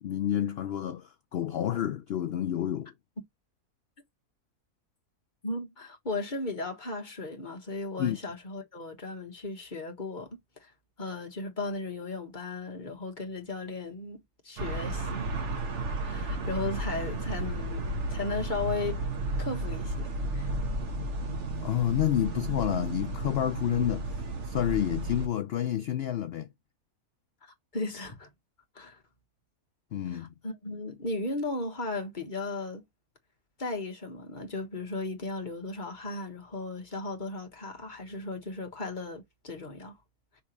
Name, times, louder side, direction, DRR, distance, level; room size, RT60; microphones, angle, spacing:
voice 1, 0.0-2.9 8.0-8.2 21.6-24.1 24.4-26.5 29.9-30.3, left 11 dB, 85° left, 0.5 m, -29 dB
voice 2, 5.4-10.7 11.0-15.3 16.0-19.0 19.4-20.5 27.7-28.3 28.7-29.0 30.1-32.8 33.6-39.9, left 3 dB, 30° left, 1.5 m, -36 dB
sound 1, 14.6-25.3, right 2 dB, 50° right, 1.5 m, -33 dB
5.9 x 3.5 x 4.5 m
omnidirectional pair, 1.6 m